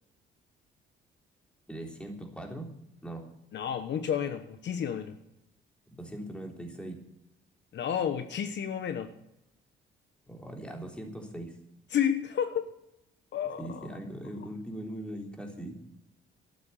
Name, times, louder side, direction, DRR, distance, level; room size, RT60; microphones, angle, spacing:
voice 1, 1.7-2.7 3.0-3.2 6.0-7.0 10.3-11.5 13.6-15.7, right 1 dB, 5° left, 1 dB, 3.6 m, -40 dB
voice 2, 3.5-5.2 7.7-9.1 11.9-12.7 13.3-13.9, left 8 dB, 65° left, 9 dB, 1.1 m, -31 dB
12.5 x 9.5 x 8.4 m, 0.84 s
cardioid pair, 90°, 20 cm